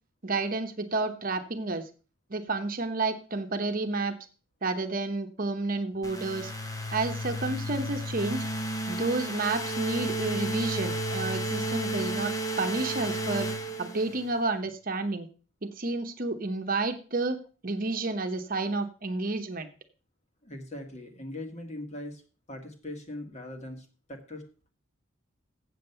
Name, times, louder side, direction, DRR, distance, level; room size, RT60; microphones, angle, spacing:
voice 1, 0.2-1.9 2.3-4.1 4.6-6.5 6.9-8.4 8.9-13.5 13.8-15.3 15.6-19.7, right 3 dB, 45° right, 7 dB, 1.0 m, -30 dB
sound 1, 6.0-14.4, right 1 dB, 15° left, 0.9 m, -32 dB
voice 2, 20.4-22.2 22.5-24.4, left 1 dB, 35° left, 4 dB, 1.8 m, -40 dB
7.8 x 7.5 x 6.8 m, 0.37 s
head